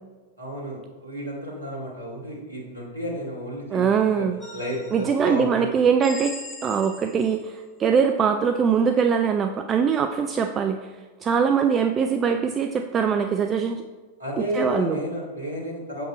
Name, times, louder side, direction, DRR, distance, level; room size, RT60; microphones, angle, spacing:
voice 1, 0.4-4.3 4.5-5.7 14.2-16.1, equal, 80° right, -2 dB, 2.1 m, -32 dB
voice 2, 3.7-4.4 4.9-6.4 6.6-10.9 11.2-13.8 14.4-15.0, right 6 dB, 25° right, 6 dB, 0.4 m, -22 dB
sound 1, 4.4-5.2 6.0-7.5, left 1 dB, 10° left, 2.0 m, -39 dB
7.5 x 5.3 x 4.3 m, 1.3 s
figure-of-eight pair, 90°, 0 cm